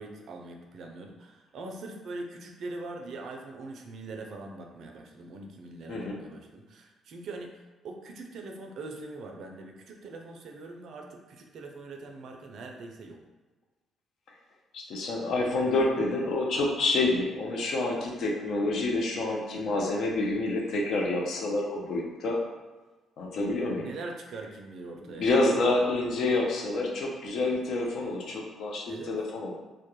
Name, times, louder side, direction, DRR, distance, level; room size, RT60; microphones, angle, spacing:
voice 1, 0.0-13.2 23.7-25.4 28.9-29.2, right 3 dB, 65° right, 2 dB, 0.3 m, -42 dB
voice 2, 5.9-6.2 14.7-22.4 23.2-23.9 25.2-29.5, left 2 dB, 70° left, 0 dB, 0.5 m, -28 dB
2.2 x 2.1 x 2.9 m, 1.2 s
supercardioid pair, 60°, 0 cm